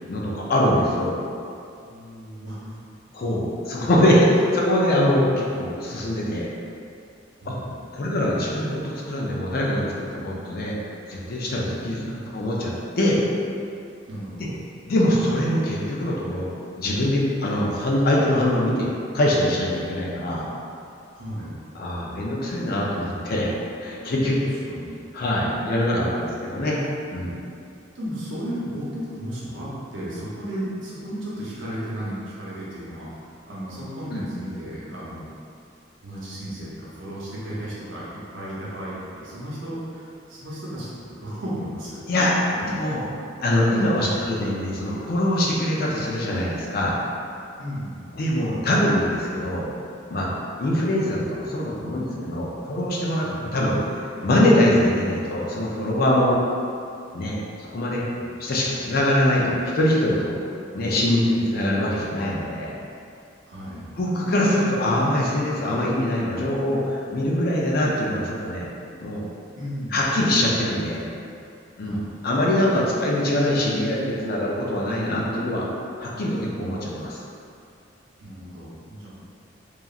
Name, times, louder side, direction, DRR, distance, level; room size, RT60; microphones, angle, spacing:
voice 1, 0.1-1.2 3.1-6.5 7.5-7.6 7.9-10.8 11.1-12.0 12.3-13.2 14.4-14.5 14.9-16.5 16.8-18.9 19.1-20.5 21.7-23.5 23.8-24.6 25.1-26.8 27.1-27.3 34.1-34.2 42.1-42.3 42.7-43.1 43.4-47.0 48.1-49.7 50.1-50.3 50.6-53.8 54.2-56.4 57.1-57.4 57.7-58.0 58.4-60.3 60.7-62.7 64.0-68.7 69.0-69.2 69.9-71.0 71.8-72.0 72.2-75.7 76.0-77.2, left 1 dB, 50° left, -4 dB, 0.4 m, -23 dB
voice 2, 1.8-2.7 7.4-8.0 11.8-12.2 14.1-14.5 21.1-21.6 24.7-24.9 27.9-33.1 33.5-35.3 36.0-36.7 36.9-42.0 42.5-42.8 44.0-44.2 47.6-48.2 53.2-53.4 57.9-58.3 63.5-63.9 69.6-70.1 71.8-72.0 78.2-79.1, equal, 85° right, -7 dB, 0.7 m, -34 dB
2.9 x 2.4 x 2.4 m, 2.5 s
head